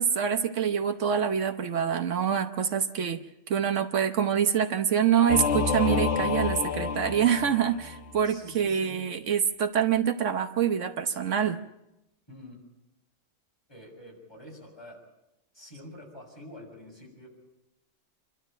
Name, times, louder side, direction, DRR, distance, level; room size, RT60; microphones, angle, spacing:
voice 1, 0.0-3.2 3.5-11.6, right 8 dB, 75° right, 9 dB, 1.3 m, -26 dB
Singing / Musical instrument, 5.3-8.2, left 5 dB, 70° left, 1.4 m, -29 dB
voice 2, 8.2-9.0 12.3-12.6 13.7-15.0 15.5-17.3, left 1 dB, 20° left, -2 dB, 6.9 m, -47 dB
27.0 x 12.5 x 9.0 m, 0.90 s
omnidirectional pair, 1.3 m